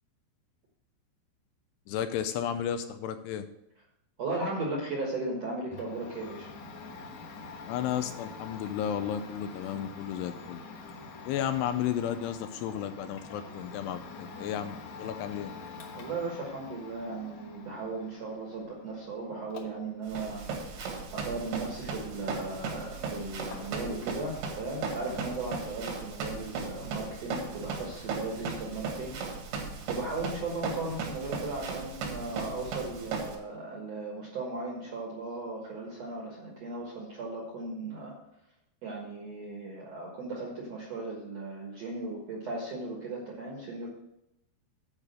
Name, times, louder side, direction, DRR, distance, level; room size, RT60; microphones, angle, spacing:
voice 1, 1.9-3.5 7.7-10.6 11.2-15.5, left 9 dB, 80° left, 9 dB, 2.6 m, -33 dB
voice 2, 4.2-6.5 15.9-29.2 29.9-38.1 38.8-43.9, right 3 dB, 60° right, -1 dB, 1.7 m, -37 dB
Domestic sounds home sounds, 5.7-24.0 24.3-25.4, left 4 dB, 60° left, 1.9 m, -47 dB
Run, 20.1-33.3, right 4 dB, 80° right, 4.0 m, -37 dB
9.7 x 5.0 x 7.6 m, 0.84 s
omnidirectional pair, 5.0 m